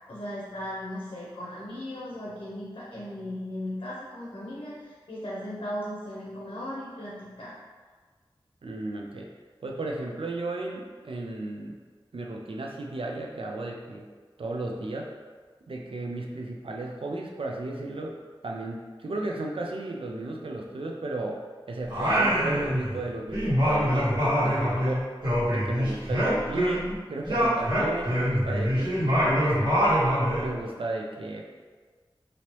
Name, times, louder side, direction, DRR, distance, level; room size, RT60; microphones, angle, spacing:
voice 1, 0.1-7.5, left 1 dB, 65° left, -7 dB, 0.7 m, -37 dB
voice 2, 8.6-9.3 9.6-11.8 12.1-14.1 14.4-15.1 15.7-18.2 18.4-21.4 21.7-25.1 25.5-30.0 30.4-31.4, right 2 dB, 75° right, 0 dB, 0.4 m, -34 dB
Singing, 21.9-23.0 23.3-26.9 27.2-30.5, equal, 50° right, 1.5 m, -24 dB
2.9 x 2.7 x 3.0 m, 1.5 s
wide cardioid pair, 65°, 9 cm